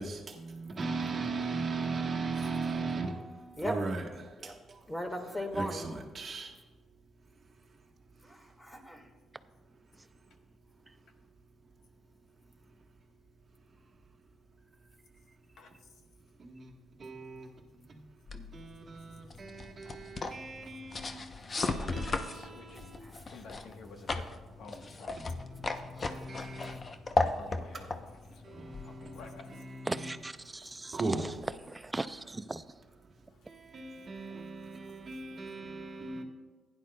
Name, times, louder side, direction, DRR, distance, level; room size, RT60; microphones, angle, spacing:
voice 1, 0.0-4.8 5.5-6.6 8.1-8.5 16.4-18.1 18.3-21.2 21.5-23.1 23.9-24.1 25.1-27.3 27.7-27.9 28.3-30.1 30.9-31.3 33.0-33.2 33.4-36.2, right 3 dB, 40° right, 1.3 m, -39 dB
voice 2, 4.9-5.9 8.2-9.1 22.9-23.2, left 1 dB, 15° left, 1.6 m, -38 dB
sound 1, 18.3-29.4, left 3 dB, 35° left, 0.7 m, -36 dB
voice 3, 21.6-22.9 23.3-24.3 24.6-25.4 27.2-28.1 28.5-29.5, left 4 dB, 75° left, 1.1 m, -51 dB
voice 4, 29.8-31.3 31.7-32.6 34.4-34.5, right 2 dB, 20° right, 0.4 m, -38 dB
15.5 x 10.0 x 2.2 m
cardioid pair, 90°, 0 cm